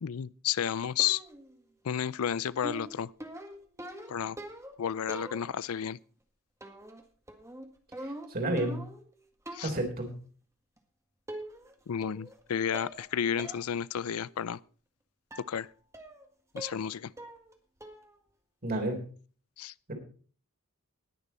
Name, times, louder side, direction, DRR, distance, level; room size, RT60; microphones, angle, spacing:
voice 1, 0.0-1.2 1.8-3.1 4.1-4.4 4.8-6.0 9.5-9.7 11.9-14.6 15.5-15.7 16.5-17.1 19.6-19.7, left 8 dB, 75° left, 0.4 m, -32 dB
sound 1, 1.0-1.5 2.6-4.8 5.1-5.7 6.6-7.0 7.3-9.1 9.5-9.8 10.8-10.9 11.3-11.7 12.0-12.4 12.7-13.1 13.4-13.6 14.0-14.1 15.3-15.5 15.9-16.2 16.6-16.9 17.2-17.5 17.8-18.1, right 1 dB, 15° right, 1.8 m, -43 dB
voice 2, 8.0-8.8 9.6-10.1 18.6-19.0 19.9-20.0, right 1 dB, 45° right, 3.6 m, -31 dB
20.0 x 6.9 x 4.1 m
head